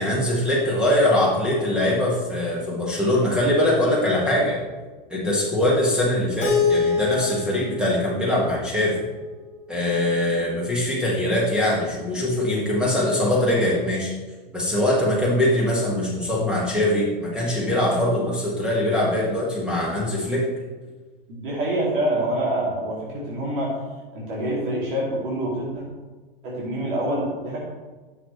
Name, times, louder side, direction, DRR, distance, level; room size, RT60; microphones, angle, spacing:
voice 1, 0.0-4.6 5.1-9.1 9.7-14.1 14.5-20.5, left 1 dB, 5° right, -5 dB, 1.8 m, -22 dB
Keyboard (musical), 6.4-9.3, left 5 dB, 35° left, 2.3 m, -26 dB
voice 2, 21.3-23.8 24.1-25.8 26.4-27.6, right 1 dB, 60° right, -5 dB, 2.6 m, -26 dB
10.0 x 6.7 x 3.2 m, 1.3 s
figure-of-eight pair, 95°, 29 cm